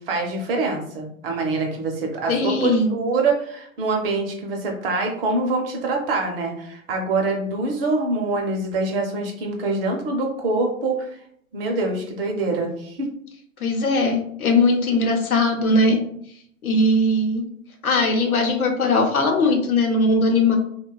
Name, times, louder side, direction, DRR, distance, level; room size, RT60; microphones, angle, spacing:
voice 1, 0.1-11.1 11.5-13.1, right 3 dB, 45° right, 2 dB, 0.7 m, -25 dB
voice 2, 2.3-2.9 13.6-16.0 16.6-17.4 17.8-20.6, left 2 dB, 90° left, 3 dB, 0.7 m, -19 dB
2.8 x 2.2 x 2.2 m, 0.67 s
hypercardioid pair, 115°, 42 cm